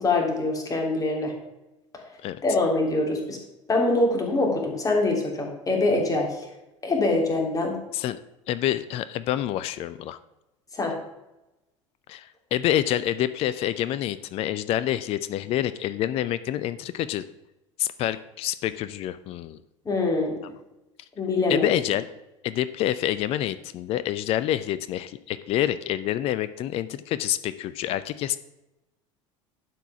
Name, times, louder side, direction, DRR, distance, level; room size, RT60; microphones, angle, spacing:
voice 1, 0.0-1.3 2.4-3.4 3.7-6.5 6.8-7.7 10.7-10.9 19.8-20.3 21.2-21.7, left 2 dB, 20° left, 1 dB, 2.7 m, -24 dB
voice 2, 8.5-10.2 12.1-17.2 17.8-19.6 21.5-22.1 22.4-28.4, left 12 dB, 35° left, 14 dB, 0.5 m, -27 dB
11.5 x 4.7 x 5.7 m, 0.95 s
figure-of-eight pair, 70°, 16 cm